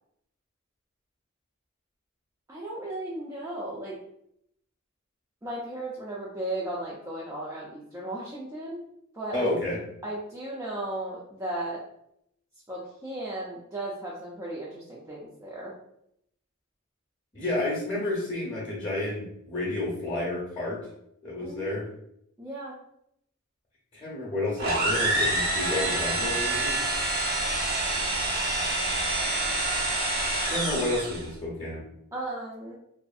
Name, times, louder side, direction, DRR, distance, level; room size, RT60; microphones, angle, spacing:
voice 1, 2.5-3.9 5.4-8.8 9.1-9.5 10.0-11.8 12.7-15.7 21.4-21.8 22.4-22.8 32.1-32.7, right 1 dB, 15° right, -7 dB, 0.4 m, -35 dB
voice 2, 9.3-9.8 17.3-20.8 21.2-21.9 23.9-26.8 30.5-31.9, left 1 dB, 25° left, -7 dB, 0.7 m, -30 dB
sound 1, 24.6-31.3, right 2 dB, 45° right, 0.7 m, -27 dB
2.6 x 2.4 x 2.4 m, 0.74 s
head